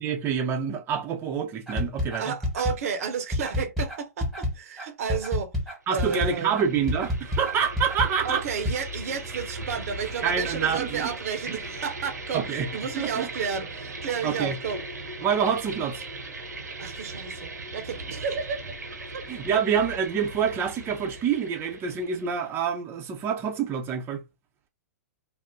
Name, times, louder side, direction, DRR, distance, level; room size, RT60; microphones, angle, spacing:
voice 1, 0.0-2.4 5.9-8.5 10.2-11.0 11.5-11.6 12.3-12.7 13.0-13.3 14.2-14.6 15.2-16.0 19.3-24.2, right 7 dB, 25° right, 0.6 m, -27 dB
sound 1, 1.7-8.8, left 1 dB, ahead, 1.2 m, -29 dB
voice 2, 2.2-5.5 5.9-6.5 8.2-14.8 16.8-18.6 19.1-19.2, right 6 dB, 60° right, 0.7 m, -32 dB
sound 2, 5.9-22.6, right 2 dB, 85° right, 0.9 m, -38 dB
2.5 x 2.0 x 3.6 m
hypercardioid pair, 110°, 9 cm